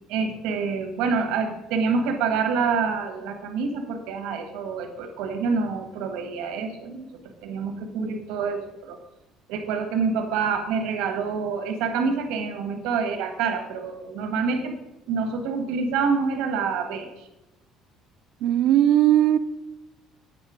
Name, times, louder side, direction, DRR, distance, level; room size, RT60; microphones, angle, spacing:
voice 1, 0.1-7.1 7.4-9.0 9.5-14.7 15.1-17.3, right 5 dB, 85° right, 1.4 m, -27 dB
voice 2, 18.4-19.4, right 12 dB, 55° right, 0.4 m, -18 dB
8.6 x 5.3 x 5.0 m
cardioid pair, 175°, 0 cm